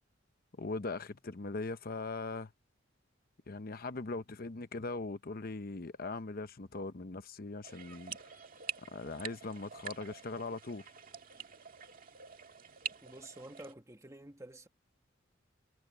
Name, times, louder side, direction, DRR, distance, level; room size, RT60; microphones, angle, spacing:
voice 1, 0.6-2.5 3.5-8.2 8.9-10.9, left 3 dB, 50° left, 0.8 m, -40 dB
sound 1, 7.6-13.7, right 6 dB, 45° right, 2.1 m, -46 dB
voice 2, 13.0-14.7, right 1 dB, 15° right, 1.6 m, -50 dB
head